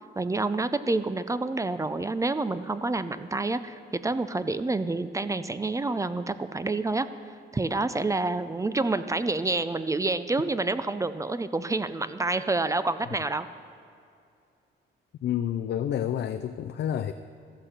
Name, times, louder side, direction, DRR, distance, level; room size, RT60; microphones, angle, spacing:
voice 1, 0.2-7.1 7.5-13.5, right 3 dB, 15° right, 13 dB, 0.4 m, -28 dB
voice 2, 15.2-17.1, left 10 dB, 60° left, 9 dB, 0.5 m, -29 dB
14.5 x 5.9 x 6.6 m, 2.4 s
cardioid pair, 90°, 20 cm